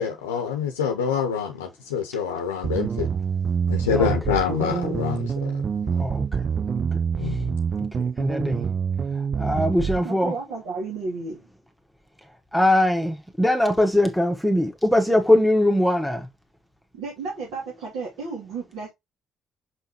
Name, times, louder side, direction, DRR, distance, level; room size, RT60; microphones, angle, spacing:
voice 1, 0.0-3.1 3.7-5.6 5.9-6.0 7.2-7.6, left 7 dB, 90° left, 0.7 m, -26 dB
sound 1, 2.6-10.0, right 6 dB, 45° right, 0.3 m, -26 dB
voice 2, 3.9-4.3 5.9-6.4 6.8-7.4 7.9-8.7 9.1-10.3 12.2-16.3, left 1 dB, ahead, 1.4 m, -22 dB
voice 3, 10.0-11.4 16.9-18.9, right 4 dB, 75° right, 2.6 m, -32 dB
6.0 x 5.4 x 3.0 m
hypercardioid pair, 50°, 0 cm